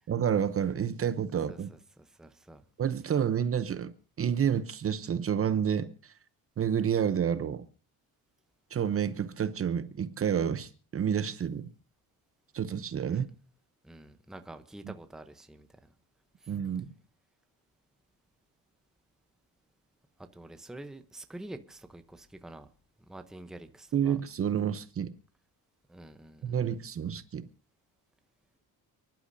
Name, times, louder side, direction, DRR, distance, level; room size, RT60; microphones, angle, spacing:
voice 1, 0.1-1.7 2.8-6.1 6.6-7.6 8.7-11.7 12.5-13.3 14.8-14.9 16.5-16.8 23.9-25.1 26.4-27.5, right 8 dB, 35° right, 0.8 m, -29 dB
voice 2, 1.5-2.6 13.0-13.2 13.8-15.9 16.4-16.5 20.3-22.7 23.1-24.2 25.9-26.6, right 1 dB, ahead, 0.7 m, -47 dB
29.5 x 11.5 x 2.7 m
cardioid pair, 165°, 38 cm